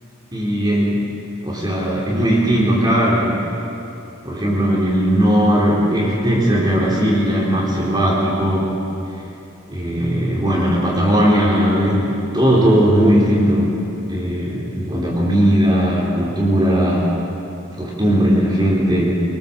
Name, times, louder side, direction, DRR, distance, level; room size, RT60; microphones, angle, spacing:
voice 1, 0.3-1.0 1.4-3.4 4.2-8.7 9.7-17.1 17.8-19.1, equal, 20° right, -5 dB, 3.7 m, -18 dB
25.5 x 19.5 x 7.4 m, 2.7 s
head